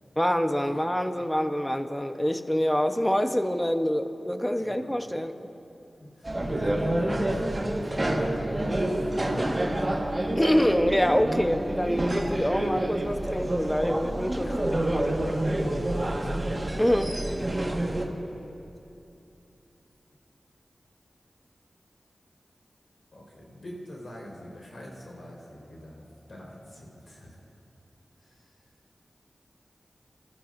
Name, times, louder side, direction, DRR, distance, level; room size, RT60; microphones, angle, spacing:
voice 1, 0.2-5.5 9.4-9.8 10.4-15.1 16.8-17.2, equal, 10° left, 7 dB, 0.9 m, -26 dB
voice 2, 4.6-5.0 6.0-7.3 7.6-10.7 14.4-14.6 15.8-16.5 23.1-27.4 28.2-28.5, left 1 dB, 70° left, -3 dB, 4.2 m, -44 dB
sound 1, 6.2-18.0, right 1 dB, 30° right, 1.6 m, -28 dB
26.0 x 14.0 x 2.6 m, 2.8 s
cardioid pair, 50°, 0 cm